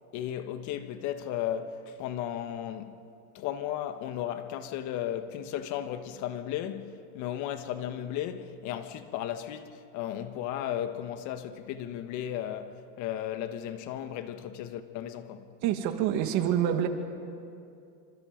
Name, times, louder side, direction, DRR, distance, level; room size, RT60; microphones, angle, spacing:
voice 1, 0.1-3.0 3.3-15.5, left 10 dB, 45° left, 1.5 m, -35 dB
voice 2, 15.6-16.9, right 10 dB, 45° right, 2.1 m, -26 dB
28.5 x 26.0 x 5.2 m
supercardioid pair, 140°, 39 cm